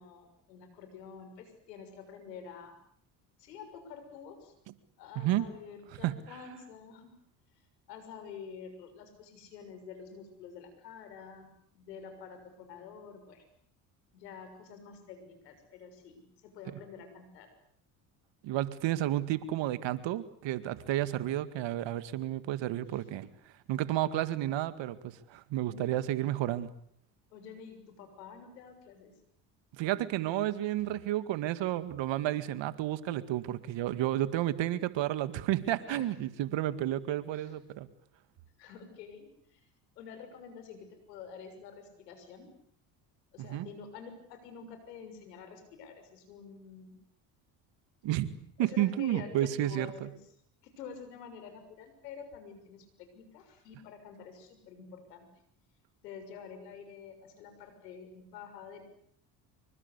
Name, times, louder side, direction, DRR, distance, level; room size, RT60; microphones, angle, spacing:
voice 1, 0.0-2.8 3.4-4.5 5.0-7.1 7.9-13.4 14.1-17.5 22.9-23.2 25.6-26.0 27.3-29.1 35.9-36.1 37.3-37.5 38.6-39.6 40.0-42.5 43.3-47.0 48.6-50.2 50.6-55.3 56.0-58.8, left 6 dB, 90° left, 8 dB, 6.6 m, -48 dB
voice 2, 18.4-23.3 23.7-26.7 29.7-37.9 43.4-43.7 48.0-48.3 48.6-50.1, right 13 dB, 65° right, 14 dB, 2.1 m, -31 dB
26.5 x 24.5 x 8.4 m, 0.66 s
hypercardioid pair, 65°, 48 cm